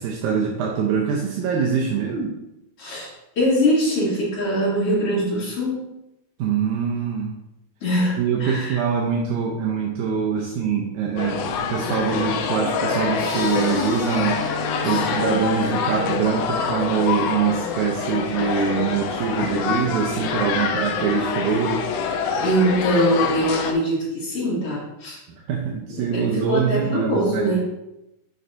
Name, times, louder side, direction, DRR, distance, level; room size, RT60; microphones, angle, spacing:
voice 1, 0.0-2.4 6.4-7.3 8.2-14.4 14.8-21.9 25.5-27.6, right 6 dB, 80° right, -1 dB, 2.2 m, -24 dB
voice 2, 2.8-5.9 7.8-8.8 14.8-15.1 22.4-25.2 26.1-27.6, equal, 50° left, -7 dB, 3.2 m, -23 dB
sound 1, 11.2-23.7, left 6 dB, 80° left, 1.5 m, -26 dB
sound 2, 13.2-16.2, left 1 dB, 25° left, 2.5 m, -40 dB
Bowed string instrument, 14.1-19.7, left 1 dB, 65° right, 1.8 m, -38 dB
9.2 x 5.5 x 2.6 m, 0.90 s
omnidirectional pair, 3.5 m